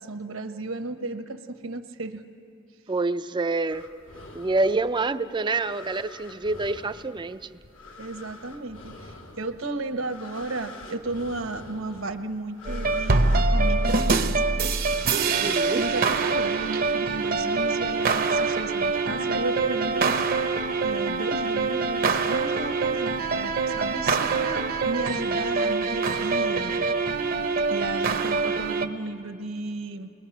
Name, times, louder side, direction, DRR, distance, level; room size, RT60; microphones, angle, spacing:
voice 1, 0.0-2.2 8.0-15.1 15.7-20.5 20.8-26.7 27.7-30.1, right 2 dB, 70° right, 7 dB, 1.1 m, -34 dB
voice 2, 2.9-3.9 4.3-7.5 15.2-15.8, right 3 dB, 20° right, 10 dB, 0.5 m, -27 dB
sound 1, 3.7-17.0, left 2 dB, 80° left, 2.1 m, -46 dB
sound 2, 12.6-28.9, right 4 dB, 45° right, 0.8 m, -24 dB
29.5 x 21.5 x 6.0 m, 2.4 s
head